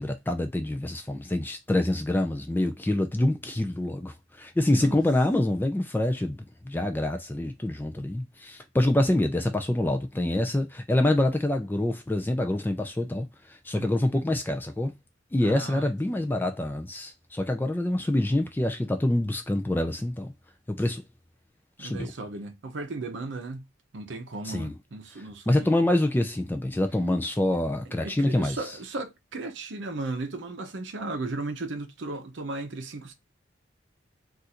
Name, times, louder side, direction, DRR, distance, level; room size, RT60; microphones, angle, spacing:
voice 1, 0.0-14.9 15.3-20.3 20.7-21.0 21.8-22.1 24.4-24.7 25.5-28.6, left 1 dB, 10° left, 0.3 m, -26 dB
voice 2, 13.8-14.2 15.4-16.4 21.8-23.6 23.9-25.7 27.9-33.1, right 2 dB, 70° right, 0.6 m, -36 dB
2.5 x 2.5 x 4.1 m
head